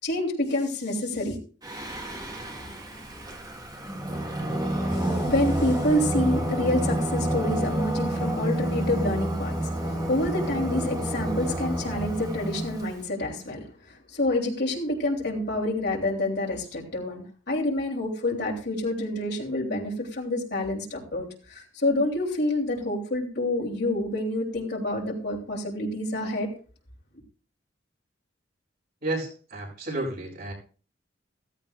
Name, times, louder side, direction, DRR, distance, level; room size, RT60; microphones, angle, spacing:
voice 1, 0.0-1.4 4.9-26.5, left 1 dB, 60° left, -1 dB, 3.1 m, -28 dB
Singing, 1.6-13.0, right 1 dB, 20° right, 2.1 m, -29 dB
voice 2, 29.0-30.5, right 2 dB, 55° right, -3 dB, 7.0 m, -31 dB
16.5 x 14.5 x 2.4 m, 0.39 s
head